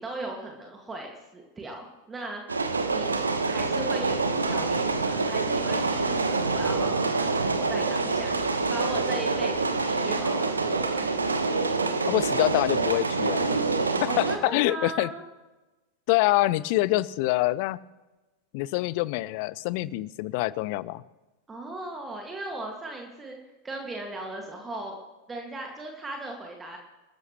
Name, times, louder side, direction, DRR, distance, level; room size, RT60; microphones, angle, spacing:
voice 1, 0.0-8.4 8.7-11.1 13.9-15.2 21.5-23.4 23.6-25.0 25.3-26.8, right 2 dB, 15° right, 1 dB, 2.0 m, -38 dB
sound 1, 2.5-14.4, right 3 dB, 75° right, 1.2 m, -26 dB
voice 2, 12.1-13.6 14.0-15.1 16.1-17.8 18.5-21.0, left 18 dB, 45° left, 20 dB, 0.5 m, -25 dB
26.5 x 13.5 x 3.1 m, 1.1 s
figure-of-eight pair, 90°, 0 cm